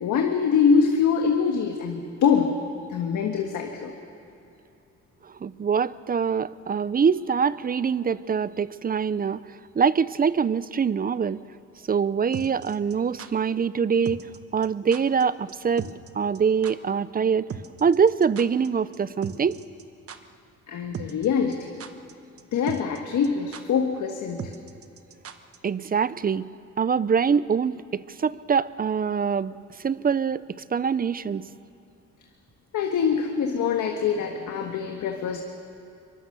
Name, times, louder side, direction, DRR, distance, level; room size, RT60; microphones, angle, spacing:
voice 1, 0.0-2.5 2.9-3.9 20.7-21.7 22.5-24.5 32.7-35.4, left 6 dB, 75° left, 3 dB, 1.6 m, -24 dB
voice 2, 5.2-11.4 11.9-14.3 14.5-17.5 17.8-19.6 25.6-26.5 26.8-29.5 29.8-30.4 30.7-31.4, right 6 dB, 30° right, 17 dB, 0.6 m, -24 dB
sound 1, 12.3-13.3 14.1-14.4 14.6-14.7 14.9-15.2 15.5-15.6 15.8-16.1 16.3-16.4 16.6-16.7 17.5-18.7 18.9-19.0 19.2-19.8 20.1-20.2 20.9-21.3 21.5-22.1 22.4-22.5 22.7-23.0 23.2-23.3 23.5-23.6 24.4-25.6 25.8-25.9, right 7 dB, 50° right, 1.2 m, -37 dB
23.5 x 21.5 x 6.8 m, 2.7 s
cardioid pair, 90°, 30 cm